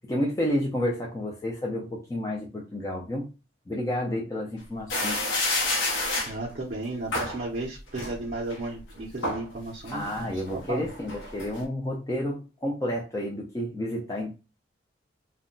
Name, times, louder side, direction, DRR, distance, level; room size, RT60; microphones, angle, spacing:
voice 1, 0.0-3.3 3.7-5.2 9.9-14.3, left 1 dB, 15° left, -2 dB, 0.3 m, -30 dB
sound 1, 4.9-6.3 7.1-7.4 8.0-8.6 9.0-9.5 9.9-11.6, left 2 dB, 85° left, 0.7 m, -29 dB
voice 2, 6.3-10.9, right 2 dB, 45° right, -2 dB, 0.5 m, -34 dB
2.1 x 2.0 x 3.7 m, 0.30 s
head